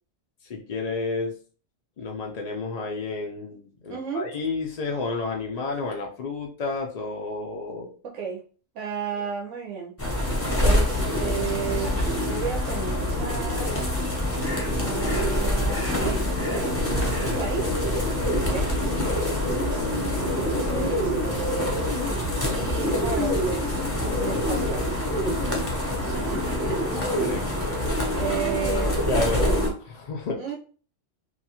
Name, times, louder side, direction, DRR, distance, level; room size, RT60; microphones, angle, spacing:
voice 1, 0.4-1.3 2.0-7.9 9.1-9.3 18.2-19.5 26.9-27.8 29.1-30.5, left 3 dB, 70° left, 1 dB, 0.3 m, -31 dB
voice 2, 3.9-4.3 8.0-8.4 8.7-10.0 10.6-10.9 11.2-13.8 14.8-17.7 18.4-18.7 20.4-21.0 21.2-21.8 22.5-23.7 24.1-26.8 27.3-27.8 28.2-29.7 30.4-30.6, right 6 dB, 85° right, -1 dB, 0.9 m, -33 dB
sound 1, 10.0-29.7, left 1 dB, 15° left, 0.5 m, -26 dB
sound 2, 10.7-24.8, left 2 dB, 55° right, 0.6 m, -35 dB
2.9 x 2.2 x 2.8 m, 0.41 s
omnidirectional pair, 1.2 m